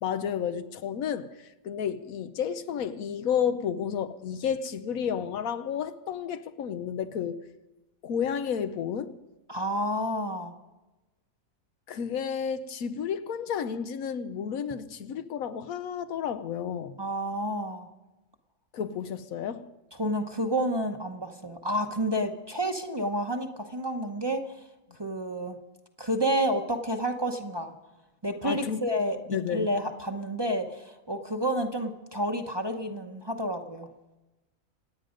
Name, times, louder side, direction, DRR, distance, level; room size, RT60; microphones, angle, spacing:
voice 1, 0.0-7.4 8.0-9.2 11.9-16.9 18.7-19.7 28.4-28.9 29.3-29.7, left 8 dB, 90° left, 1.3 m, -31 dB
voice 2, 9.5-10.5 17.0-17.9 20.0-24.5 25.0-25.6 26.0-27.7 28.2-29.2 29.5-33.9, equal, 20° right, 0.8 m, -30 dB
26.5 x 9.1 x 5.2 m
omnidirectional pair, 1.4 m